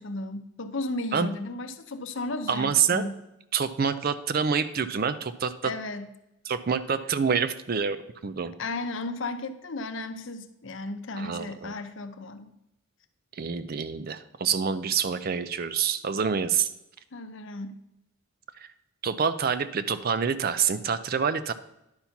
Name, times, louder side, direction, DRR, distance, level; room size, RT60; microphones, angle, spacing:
voice 1, 0.0-3.2 5.6-6.1 8.6-12.5 17.1-17.8, left 2 dB, 55° left, 9 dB, 0.7 m, -34 dB
voice 2, 2.5-3.1 3.5-5.7 6.5-8.0 8.2-8.5 11.2-11.7 13.4-16.7 18.6-18.7 19.0-21.5, right 6 dB, 40° right, 13 dB, 0.4 m, -27 dB
10.5 x 4.3 x 5.7 m, 0.85 s
head